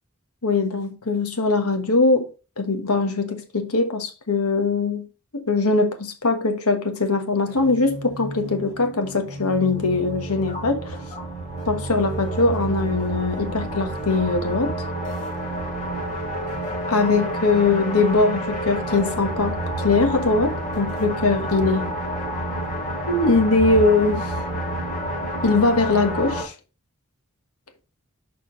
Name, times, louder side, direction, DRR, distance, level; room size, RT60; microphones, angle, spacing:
voice 1, 0.4-2.3 2.6-5.1 5.3-11.0 11.6-14.8 16.9-22.0 23.1-24.3 25.4-26.5, left 3 dB, 85° left, 1.4 m, -21 dB
sound 1, 7.5-26.4, right 1 dB, 35° left, 2.0 m, -29 dB
6.6 x 5.1 x 3.9 m
head